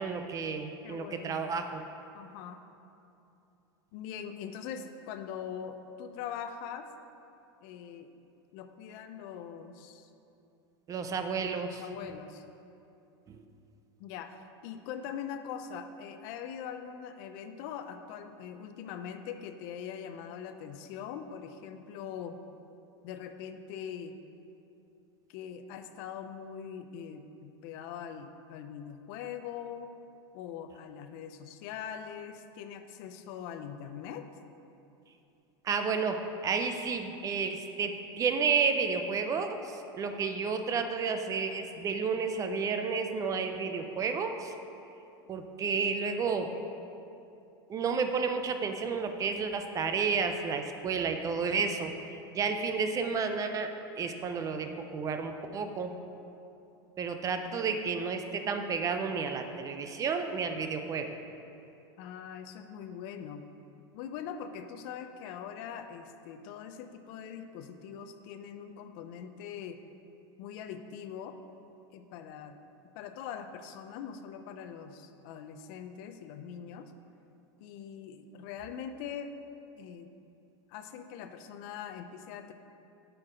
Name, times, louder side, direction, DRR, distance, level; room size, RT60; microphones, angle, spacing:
voice 1, 0.0-1.8 10.9-11.8 13.3-13.4 35.6-44.5 45.3-46.5 47.7-53.7 54.0-56.0 57.0-61.1, right 5 dB, 25° right, 7 dB, 0.5 m, -31 dB
voice 2, 0.8-1.5 2.1-2.6 3.9-6.9 7.6-8.2 8.5-10.1 11.8-12.4 14.0-14.3 14.6-22.4 23.0-24.1 25.3-29.9 30.3-34.2 62.0-63.4 63.9-69.8 70.4-71.4 71.9-72.5 72.9-76.9 77.6-79.3 79.8-80.1 80.7-82.5, left 8 dB, 60° left, 8 dB, 0.5 m, -42 dB
7.6 x 4.6 x 5.0 m, 2.8 s
supercardioid pair, 125°, 13 cm